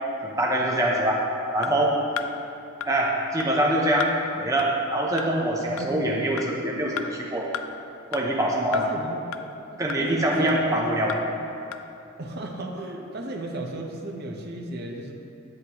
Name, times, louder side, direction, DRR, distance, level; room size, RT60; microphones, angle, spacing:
voice 1, 0.2-1.2 1.5-1.9 2.9-7.5 8.1-8.9 9.8-11.2, right 1 dB, 15° right, -3 dB, 0.6 m, -24 dB
sound 1, 1.6-1.7 2.2-2.3 2.8-2.9 3.4-3.5 4.0-4.1 4.6-4.7 5.2-5.3 5.8-5.9 6.4-6.5 7.0-7.1 7.5-7.7 8.1-8.2 8.7-8.8 9.3-9.4 9.9-10.0 10.5-10.6 11.1-11.2 11.7-11.8, left 8 dB, 75° left, 0.4 m, -32 dB
voice 2, 5.6-5.9 8.7-9.2 9.7-10.8 12.2-15.1, right 1 dB, 50° right, 1 dB, 0.7 m, -35 dB
9.4 x 7.8 x 2.9 m, 2.7 s
head